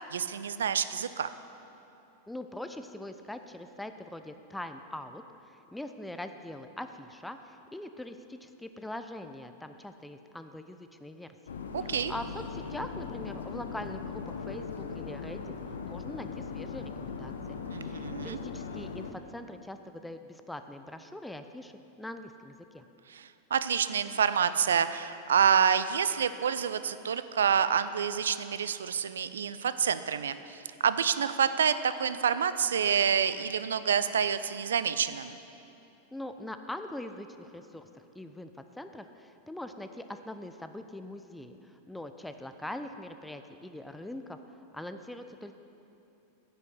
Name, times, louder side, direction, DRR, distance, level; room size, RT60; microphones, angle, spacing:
voice 1, 0.1-1.3 11.7-12.1 17.7-18.4 23.1-35.4, right 7 dB, 65° right, 13 dB, 0.4 m, -28 dB
voice 2, 2.3-5.2 5.5-11.3 11.8-15.5 15.8-17.6 17.8-21.7 22.0-22.8 36.1-37.9 38.2-45.6, left 1 dB, 5° left, 8 dB, 0.4 m, -42 dB
sound 1, 11.5-19.1, left 5 dB, 70° left, 0.7 m, -39 dB
9.6 x 6.3 x 7.7 m, 2.9 s
figure-of-eight pair, 90°, 0 cm